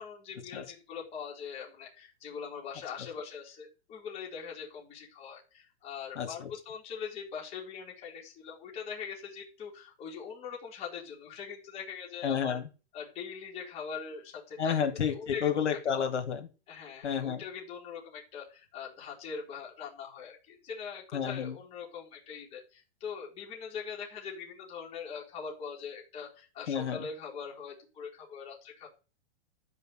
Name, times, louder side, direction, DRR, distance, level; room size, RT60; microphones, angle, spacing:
voice 1, 0.0-12.6 12.9-15.5 16.7-28.9, left 6 dB, 20° left, -2 dB, 3.9 m, -42 dB
voice 2, 6.2-6.5 12.2-12.7 14.6-16.5 17.0-17.4 21.1-21.6 26.7-27.1, left 7 dB, 90° left, 4 dB, 3.1 m, -30 dB
13.0 x 5.6 x 8.0 m, 0.33 s
hypercardioid pair, 170°, 34 cm